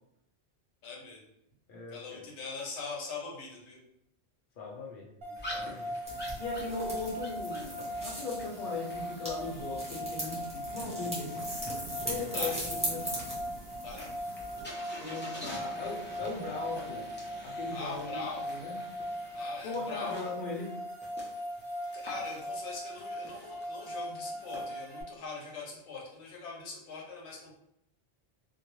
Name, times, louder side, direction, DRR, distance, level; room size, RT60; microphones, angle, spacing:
voice 1, 0.8-1.2 1.9-3.8 12.3-12.6 13.8-14.0 17.7-18.5 19.3-20.3 21.9-27.5, left 4 dB, 90° left, -2 dB, 1.0 m, -42 dB
voice 2, 1.7-2.3 4.6-6.0 6.4-7.8 8.0-11.4 12.0-13.0 15.0-17.1 17.4-18.2 18.5-18.7 19.6-20.8, left 4 dB, 55° left, -2 dB, 0.7 m, -39 dB
sound 1, 5.2-25.0, equal, 65° right, 0.8 m, -39 dB
sound 2, 5.4-24.6, left 1 dB, 20° left, 0.3 m, -49 dB
sound 3, 6.1-14.6, right 1 dB, 5° right, 0.7 m, -40 dB
2.3 x 2.0 x 2.9 m, 0.79 s
omnidirectional pair, 1.1 m